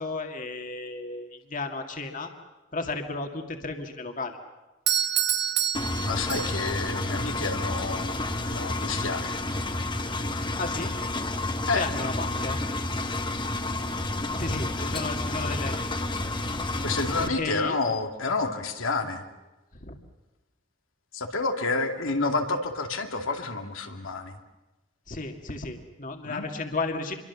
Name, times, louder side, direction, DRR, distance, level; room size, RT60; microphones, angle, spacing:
voice 1, 0.0-2.3 2.7-4.4 10.6-11.0 11.7-12.6 14.3-15.8 17.2-17.8 19.8-20.0 25.1-27.1, left 3 dB, 40° left, 4 dB, 2.1 m, -33 dB
Doorbell, 4.9-6.9, right 10 dB, 55° right, 1.0 m, -27 dB
Engine, 5.7-17.3, left 2 dB, 25° left, 1.2 m, -30 dB
voice 2, 6.1-9.4 11.7-11.8 14.8-14.9 16.6-19.2 21.1-24.4 26.2-26.5, left 3 dB, 90° left, 4 dB, 2.5 m, -29 dB
27.0 x 23.0 x 7.2 m, 1.1 s
head